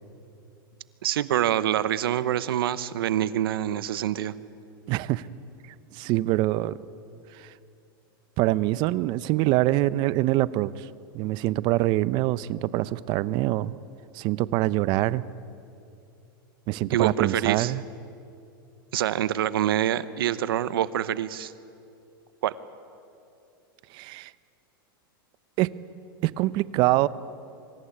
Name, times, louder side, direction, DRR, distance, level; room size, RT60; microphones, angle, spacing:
voice 1, 1.0-4.3 16.9-17.7 18.9-21.5 22.4-22.6, right 11 dB, 80° right, 16 dB, 0.9 m, -26 dB
voice 2, 4.9-5.3 5.9-6.8 7.4-7.5 8.4-10.9 11.1-13.7 14.1-15.2 16.7-17.8 23.9-24.3 25.6-25.7 26.2-27.1, right 17 dB, 40° right, 18 dB, 0.6 m, -24 dB
24.5 x 14.5 x 9.8 m, 2.6 s
supercardioid pair, 140°, 12 cm